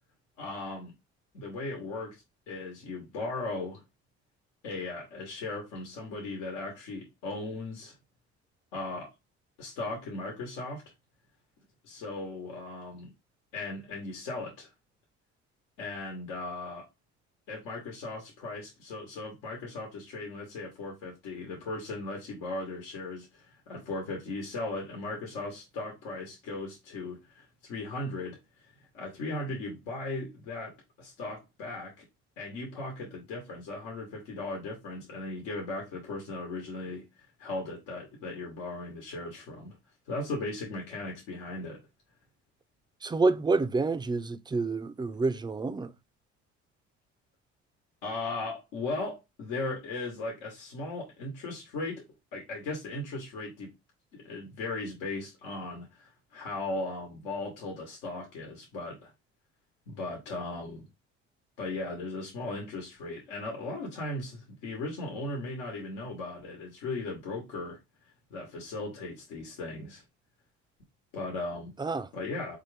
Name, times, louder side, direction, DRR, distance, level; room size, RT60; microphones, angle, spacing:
voice 1, 0.4-0.9 1.3-3.8 4.6-7.9 8.7-9.1 9.6-10.8 11.8-13.1 13.5-14.7 15.8-16.9 17.5-28.4 28.9-30.7 31.0-32.0 32.4-37.0 37.4-39.8 40.1-41.8 48.0-52.0 52.3-53.7 54.1-59.1 59.9-60.9 61.6-67.8 68.3-70.0 71.1-71.7 72.1-72.6, left 2 dB, 90° left, 1.2 m, -37 dB
voice 2, 43.0-45.9 71.8-72.1, right 3 dB, 15° right, 0.3 m, -28 dB
4.3 x 2.5 x 3.2 m
supercardioid pair, 85°, 30 cm